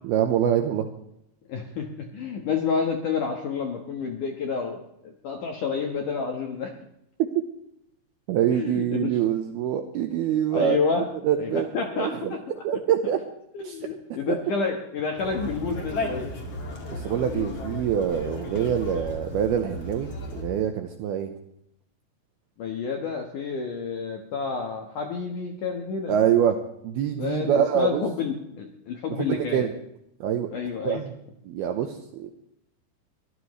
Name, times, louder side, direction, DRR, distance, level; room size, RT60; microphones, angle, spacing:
voice 1, 0.0-0.9 8.3-10.8 11.2-12.4 12.6-13.2 13.6-13.8 14.1-14.4 16.9-21.3 26.1-26.6 26.8-28.0 29.1-29.8 30.2-30.5 30.8-31.1 31.4-32.3, right 9 dB, 80° right, 6 dB, 2.3 m, -25 dB
voice 2, 1.5-6.7 8.5-9.1 10.5-11.1 11.4-12.4 13.5-16.3 22.6-26.1 27.1-29.6 30.5-31.0, left 5 dB, 65° left, 3 dB, 2.1 m, -29 dB
Conversation, 15.2-20.4, left 2 dB, 40° left, 2.6 m, -34 dB
24.0 x 15.5 x 3.2 m, 0.77 s
omnidirectional pair, 5.5 m